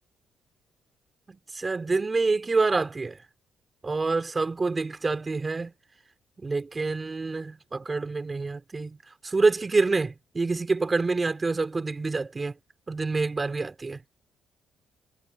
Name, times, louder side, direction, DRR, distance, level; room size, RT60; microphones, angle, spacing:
voice 1, 1.3-3.2 3.8-5.7 6.4-9.0 9.2-12.5 12.9-14.0, right 3 dB, 25° right, 4.9 m, -27 dB
cardioid pair, 90°, 0 cm